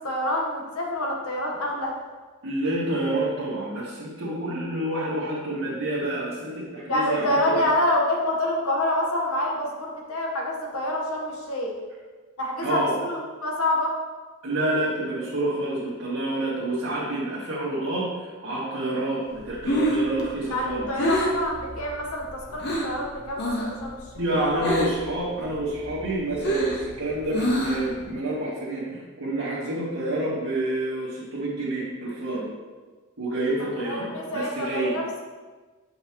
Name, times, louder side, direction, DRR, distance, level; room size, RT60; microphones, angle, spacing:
voice 1, 0.0-1.9 6.9-11.7 12.4-13.9 20.5-24.0 24.5-24.7 33.9-35.0, left 1 dB, 85° left, 0 dB, 1.2 m, -27 dB
voice 2, 2.4-7.7 12.6-13.0 14.4-20.9 24.1-32.5 33.2-35.0, right 1 dB, 75° right, -9 dB, 1.5 m, -28 dB
Breathing, 19.4-23.0 23.3-23.8 24.1-25.1 25.4-28.0, equal, 50° left, 1.0 m, -26 dB
7.0 x 5.5 x 3.0 m, 1.4 s
head